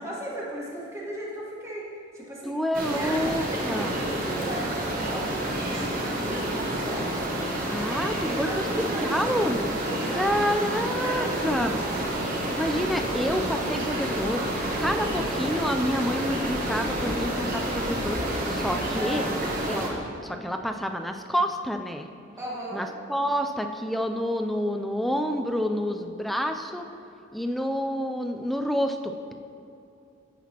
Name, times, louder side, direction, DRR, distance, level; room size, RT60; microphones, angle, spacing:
voice 1, 0.0-1.9 2.1-7.1 8.1-9.1 9.8-11.4 18.9-19.4 22.4-22.8, right 1 dB, 15° right, -5 dB, 1.6 m, -37 dB
voice 2, 2.4-4.0 7.7-9.7 10.1-11.7 12.6-14.4 14.8-18.2 18.5-19.2 19.7-19.9 20.2-22.1 22.7-26.9 27.3-29.3, equal, ahead, 5 dB, 0.3 m, -28 dB
sound 1, 2.7-19.9, right 1 dB, 45° right, 1.2 m, -29 dB
14.0 x 6.0 x 2.9 m, 2.7 s
head